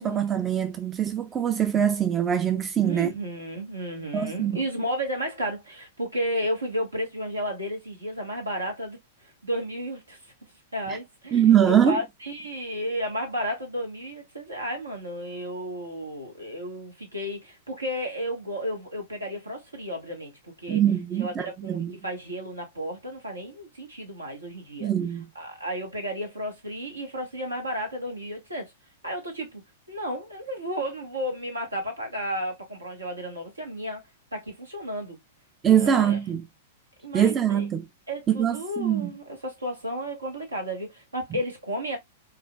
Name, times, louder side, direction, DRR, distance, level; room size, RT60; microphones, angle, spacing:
voice 1, 0.0-3.2 4.1-4.6 10.9-11.0 11.3-12.0 20.7-22.0 24.8-25.3 35.6-36.4 37.1-37.9 38.3-39.1, right 9 dB, 20° right, 0.5 m, -23 dB
voice 2, 2.8-9.0 9.4-10.2 10.7-20.8 21.2-21.3 21.6-24.9 25.3-28.7 29.0-29.6 29.9-34.1 34.3-35.2 35.7-36.2 37.0-37.7 38.1-42.0, equal, 80° right, 1.4 m, -33 dB
5.2 x 2.5 x 2.3 m
figure-of-eight pair, 100°, 0 cm